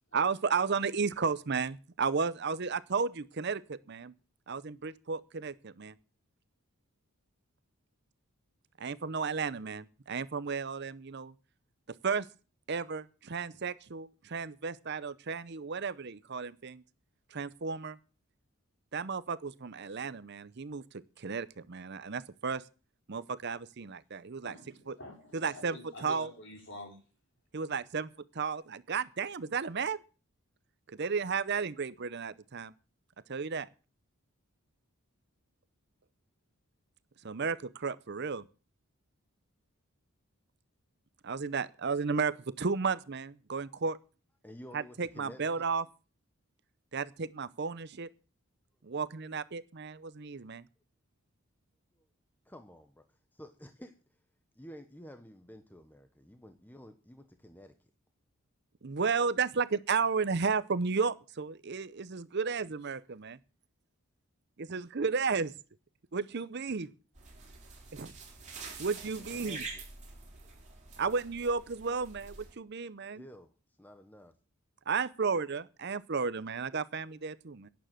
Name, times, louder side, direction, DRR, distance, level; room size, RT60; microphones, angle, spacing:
voice 1, 0.1-4.1 4.5-5.9 8.8-11.3 12.0-12.3 12.7-16.8 17.3-18.0 18.9-20.8 21.2-22.6 23.1-24.6 24.9-25.0 25.3-26.3 27.5-28.1 28.3-30.0 30.9-32.7 33.3-33.7 37.2-38.4 41.2-44.0 44.7-45.8 46.9-48.1 48.8-50.6 58.8-63.4 64.6-65.5 66.1-66.9 67.9-68.1 68.8-69.6 71.0-73.2 74.9-77.7, right 5 dB, 50° right, 16 dB, 0.6 m, -33 dB
voice 2, 24.4-27.0, left 2 dB, 55° left, 2 dB, 4.9 m, -47 dB
voice 3, 44.4-45.7 52.4-53.9 54.6-57.7 69.3-69.8 73.2-73.5 73.8-74.3, equal, 10° left, 7 dB, 1.0 m, -51 dB
sound 1, 67.1-72.5, right 4 dB, 30° right, 4.5 m, -46 dB
11.5 x 9.1 x 7.5 m, 0.36 s
head